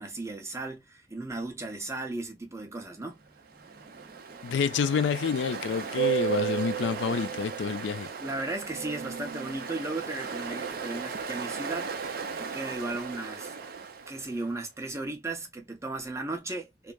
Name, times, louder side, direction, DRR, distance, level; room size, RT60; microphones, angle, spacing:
voice 1, 0.0-4.5 8.2-11.9 12.4-13.5 14.1-16.9, right 2 dB, 15° right, 0.7 m, -36 dB
Ocean, 3.4-14.5, right 7 dB, 60° right, 0.5 m, -35 dB
voice 2, 4.4-8.1, left 6 dB, 85° left, 0.4 m, -28 dB
3.2 x 2.0 x 2.3 m
head